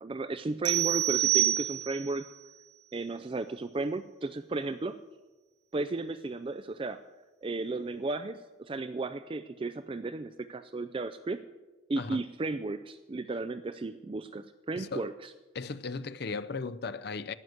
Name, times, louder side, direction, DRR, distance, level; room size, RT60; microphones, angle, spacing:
voice 1, 0.0-2.2 2.9-5.0 5.7-7.0 7.4-11.4 11.9-15.3, right 3 dB, 25° right, 0.3 m, -34 dB
sound 1, 0.6-2.2, right 14 dB, 60° right, 0.8 m, -27 dB
voice 2, 14.8-15.1 15.5-17.3, left 4 dB, 50° left, 0.5 m, -36 dB
12.5 x 9.6 x 7.8 m
head